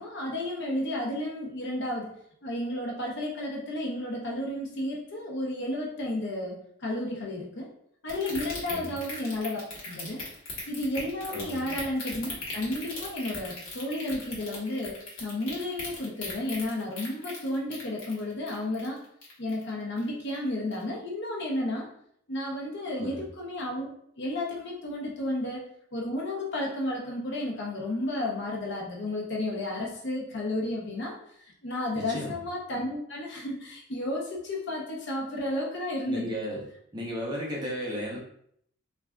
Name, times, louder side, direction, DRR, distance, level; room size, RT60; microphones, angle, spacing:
voice 1, 0.0-2.1 2.4-7.7 8.0-10.2 10.7-19.0 19.4-21.9 22.3-23.9 24.2-25.6 25.9-31.1 31.4-36.3, left 1 dB, 55° left, -2 dB, 0.7 m, -32 dB
sound 1, 8.1-19.7 20.0-20.4 20.7-20.8, left 3 dB, 75° left, 1.0 m, -38 dB
voice 2, 8.7-9.0 11.3-11.7 22.9-23.2 31.9-32.4 36.1-36.7 36.9-38.2, equal, 20° right, -4 dB, 0.6 m, -34 dB
3.3 x 2.4 x 2.3 m, 0.68 s
head